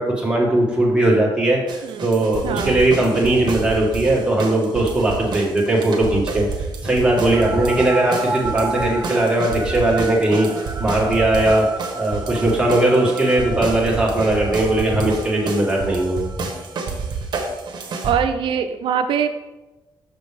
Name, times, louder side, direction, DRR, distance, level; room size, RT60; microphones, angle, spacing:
voice 1, 0.0-11.7 12.0-16.2, right 1 dB, 10° right, -4 dB, 1.9 m, -19 dB
sound 1, 1.7-18.1, right 4 dB, 55° right, 1.1 m, -30 dB
voice 2, 2.4-2.8 18.0-19.3, right 8 dB, 75° right, 8 dB, 0.4 m, -22 dB
sound 2, 7.3-16.8, right 3 dB, 30° right, 1.0 m, -32 dB
6.3 x 6.1 x 3.4 m, 1.1 s
cardioid pair, 115°, 9 cm